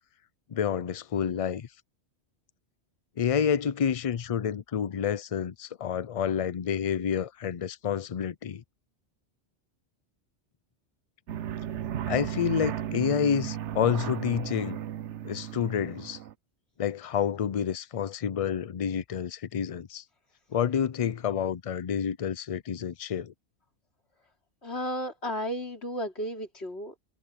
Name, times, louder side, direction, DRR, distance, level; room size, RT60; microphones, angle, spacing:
voice 1, 0.5-1.7 3.2-8.6 12.1-14.8 15.2-16.2 16.8-20.0 20.5-23.3, left 8 dB, 45° left, 0.5 m, -29 dB
sound 1, 11.3-16.3, right 10 dB, 90° right, 1.0 m, -35 dB
voice 2, 24.6-27.0, equal, 70° left, 3.7 m, -33 dB
omnidirectional pair, 1.1 m